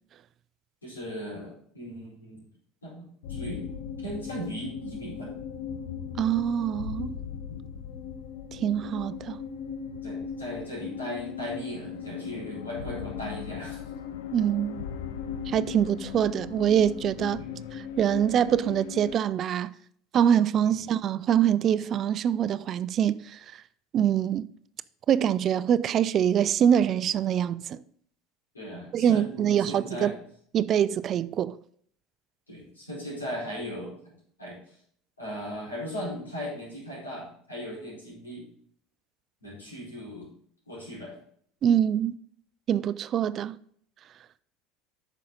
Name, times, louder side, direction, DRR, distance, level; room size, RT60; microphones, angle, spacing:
voice 1, 0.8-2.5 2.8-3.6 4.0-5.3 7.5-7.7 10.0-13.8 17.4-17.6 20.6-20.8 28.5-30.2 32.5-34.0 34.4-34.8 35.2-38.5 39.4-40.3 40.7-41.1, equal, 85° left, 4.3 m, -38 dB
Creepy Ambient, 3.2-19.2, left 7 dB, 65° left, 0.7 m, -38 dB
voice 2, 6.2-7.2 8.5-9.4 14.3-14.8 15.5-17.4 17.7-19.7 20.1-23.4 23.9-24.5 25.1-27.8 28.9-30.1 30.5-31.5 41.6-42.2 42.7-43.6, right 9 dB, 40° right, 0.4 m, -24 dB
9.5 x 6.2 x 3.9 m
figure-of-eight pair, 70°, 0 cm